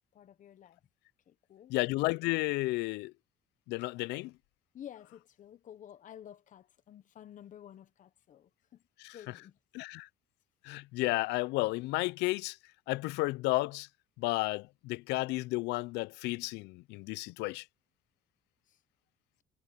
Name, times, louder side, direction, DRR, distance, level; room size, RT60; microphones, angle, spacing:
voice 1, 0.1-0.8 1.3-1.7 4.7-8.8 9.1-9.6 18.7-18.8, left 10 dB, 50° left, 1.0 m, -51 dB
voice 2, 1.7-3.1 3.7-4.3 9.0-9.2 9.7-10.1 10.6-12.6 12.9-13.9 14.2-17.6, left 22 dB, 90° left, 0.4 m, -32 dB
cardioid pair, 110°, 17 cm